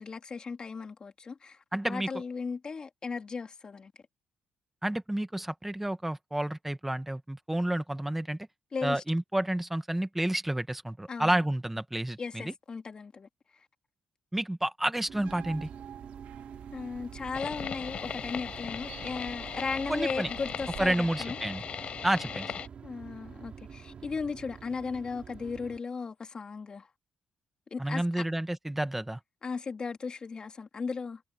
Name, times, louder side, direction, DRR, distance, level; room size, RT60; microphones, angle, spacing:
voice 1, 0.0-1.6 1.8-3.9 8.7-9.0 11.1-11.4 12.2-13.3 16.7-21.4 22.8-26.9 27.7-28.2 29.4-31.2, left 5 dB, 35° left, 2.8 m, -36 dB
voice 2, 1.7-2.1 4.8-8.4 8.8-12.5 14.3-15.7 19.9-20.3 20.8-21.6 22.0-22.5 27.8-29.2, right 1 dB, 10° right, 1.8 m, -30 dB
sound 1, 15.1-25.8, right 7 dB, 50° right, 3.3 m, -47 dB
sound 2, 15.2-21.0, right 12 dB, 90° right, 2.7 m, -47 dB
sound 3, 17.3-22.7, left 7 dB, 50° left, 5.4 m, -38 dB
cardioid pair, 100°, 2 cm